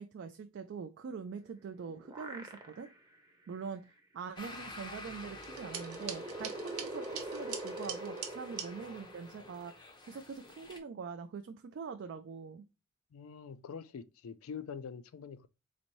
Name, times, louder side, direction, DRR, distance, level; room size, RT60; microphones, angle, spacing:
voice 1, 0.0-2.9 3.5-3.8 4.1-12.6, right 5 dB, 50° right, 0.3 m, -44 dB
sound 1, 1.5-3.1 3.5-3.6 4.9-9.7, right 1 dB, 20° right, 0.7 m, -44 dB
sound 2, 4.4-10.8, left 2 dB, 20° left, 0.5 m, -50 dB
sound 3, 5.4-8.7, right 8 dB, 75° right, 0.8 m, -43 dB
voice 2, 13.1-15.5, left 6 dB, 70° left, 0.4 m, -45 dB
4.1 x 2.6 x 2.9 m
head